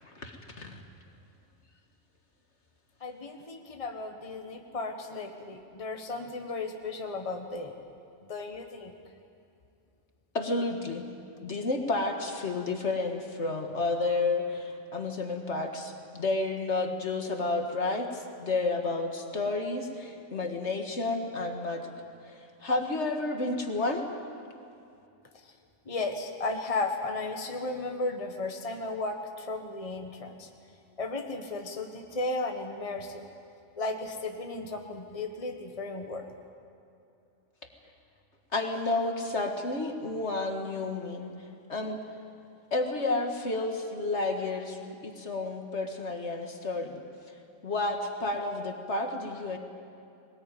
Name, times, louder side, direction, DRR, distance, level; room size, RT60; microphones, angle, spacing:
voice 1, 0.2-0.8 10.3-11.1 11.4-21.9 22.3-24.0 38.5-41.3 41.7-42.1 42.7-47.0 47.6-49.6, left 2 dB, 60° left, 4 dB, 2.1 m, -31 dB
voice 2, 3.0-7.7 8.2-8.9 25.9-30.5 31.0-33.1 33.8-36.2, left 2 dB, 30° left, 3 dB, 1.5 m, -34 dB
22.0 x 19.5 x 9.3 m, 2.5 s
omnidirectional pair, 1.3 m